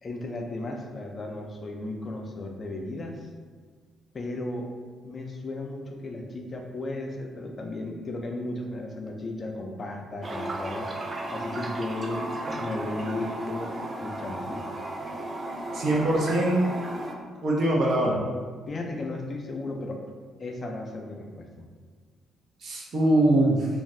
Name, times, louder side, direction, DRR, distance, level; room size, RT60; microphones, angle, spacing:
voice 1, 0.0-3.3 4.1-4.7 5.0-12.3 12.6-14.6 18.7-20.0 20.4-21.6, left 2 dB, 40° left, 2 dB, 0.4 m, -35 dB
Toilet flush, 10.2-17.1, right 1 dB, 30° right, 0.3 m, -34 dB
voice 2, 15.7-16.7 17.4-18.2 22.6-23.7, right 1 dB, 60° right, -3 dB, 0.7 m, -22 dB
2.6 x 2.3 x 3.1 m, 1.6 s
cardioid pair, 90°, 0 cm